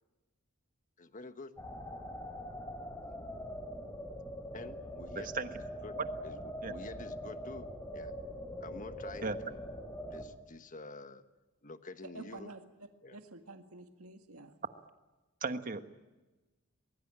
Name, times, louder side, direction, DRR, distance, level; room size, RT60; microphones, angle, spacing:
voice 1, 1.0-1.5 4.5-5.3 5.8-6.0 6.2-7.7 7.9-8.1 8.6-9.7 10.1-11.2 11.6-12.5 13.0-13.2, left 3 dB, 40° left, 9 dB, 1.3 m, -48 dB
sound 1, 1.6-10.2, equal, 10° left, 4.3 m, -43 dB
voice 2, 5.1-5.5 5.9-6.1 6.6-6.7 9.2-9.4 15.4-15.9, right 4 dB, 40° right, 9 dB, 1.4 m, -36 dB
voice 3, 12.1-14.5, right 2 dB, 85° right, 5 dB, 1.8 m, -50 dB
23.5 x 22.0 x 8.9 m, 1.1 s
head